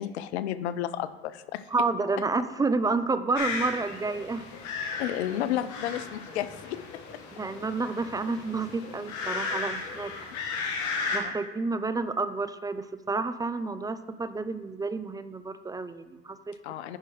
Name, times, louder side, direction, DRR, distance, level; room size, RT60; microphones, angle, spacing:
voice 1, 0.0-1.6 5.0-6.8 11.2-11.3 16.6-17.0, left 11 dB, 85° left, 14 dB, 0.5 m, -32 dB
voice 2, 1.7-4.5 7.3-10.3 11.1-16.6, right 3 dB, 10° right, 12 dB, 0.4 m, -30 dB
sound 1, 3.4-11.2, left 4 dB, 60° left, 1.5 m, -35 dB
10.0 x 4.8 x 3.8 m, 1.2 s
hypercardioid pair, 70°, 32 cm